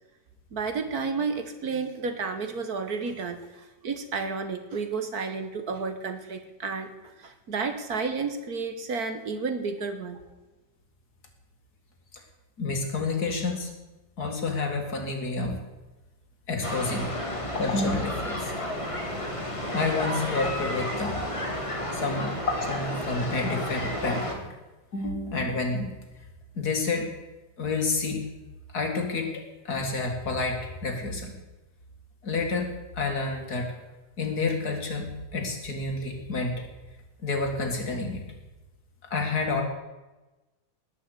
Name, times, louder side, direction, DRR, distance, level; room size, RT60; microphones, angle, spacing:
voice 1, 0.5-10.2, right 4 dB, 60° right, 8 dB, 1.7 m, -31 dB
voice 2, 12.6-13.7 14.2-15.5 16.5-18.5 19.7-21.2 21.9-24.4 24.9-25.9 26.5-27.1 27.6-28.2 28.7-31.3 32.2-33.7 34.2-36.6 37.2-38.2 39.1-39.6, left 3 dB, 60° left, 2 dB, 2.7 m, -29 dB
sound 1, 16.6-24.4, equal, 20° left, 2.0 m, -32 dB
19.0 x 6.4 x 8.2 m, 1.1 s
omnidirectional pair, 1.9 m